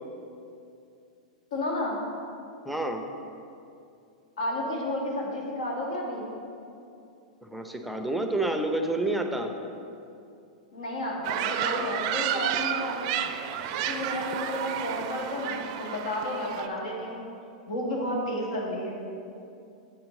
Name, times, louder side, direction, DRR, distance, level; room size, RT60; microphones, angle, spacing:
voice 1, 1.5-2.0 4.4-6.3 10.7-13.2 13.7-17.2 17.7-19.0, left 1 dB, 70° left, -2 dB, 1.6 m, -32 dB
voice 2, 2.6-3.0 7.4-9.5, right 2 dB, ahead, 5 dB, 0.6 m, -29 dB
sound 1, 11.2-16.7, right 10 dB, 50° right, 0.4 m, -31 dB
7.6 x 5.9 x 3.7 m, 2.6 s
hypercardioid pair, 100°, 4 cm